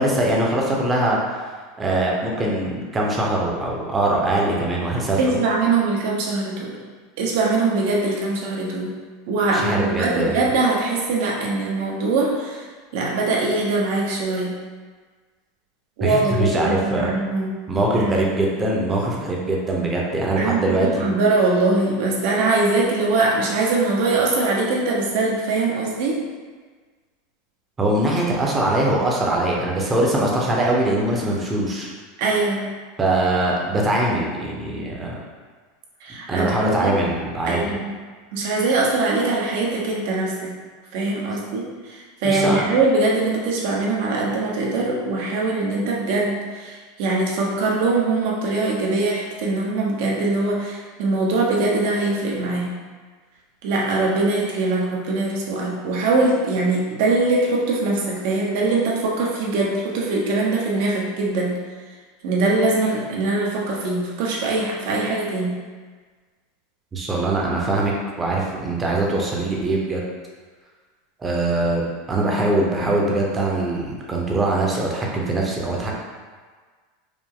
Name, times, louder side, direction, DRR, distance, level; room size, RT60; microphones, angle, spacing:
voice 1, 0.0-1.5 1.8-5.2 9.5-10.4 16.0-17.1 17.7-21.1 27.8-31.9 33.0-35.2 36.3-37.7 42.2-42.6 66.9-70.0 71.2-75.9, right 2 dB, 15° right, -2 dB, 0.8 m, -22 dB
voice 2, 5.2-6.8 7.2-8.9 9.3-12.7 12.9-14.5 16.0-17.5 17.9-18.2 20.4-26.2 32.2-32.7 36.0-37.0 37.5-37.9 38.3-40.5 40.9-52.7 53.6-61.5 62.2-65.5, right 3 dB, 65° right, -2 dB, 1.0 m, -22 dB
5.0 x 2.1 x 3.7 m, 1.5 s
supercardioid pair, 135°, 0 cm